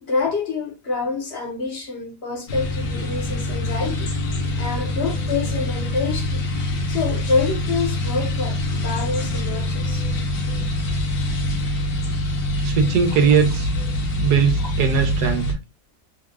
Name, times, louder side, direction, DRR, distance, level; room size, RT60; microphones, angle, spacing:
voice 1, 0.0-4.1 4.6-6.5 6.9-10.0, left 4 dB, 45° left, 0.9 m, -26 dB
sound 1, 2.5-15.5, left 1 dB, 65° left, 1.4 m, -25 dB
voice 2, 12.6-13.7 14.2-15.5, right 6 dB, 75° right, 1.4 m, -19 dB
3.8 x 2.3 x 3.5 m
omnidirectional pair, 1.8 m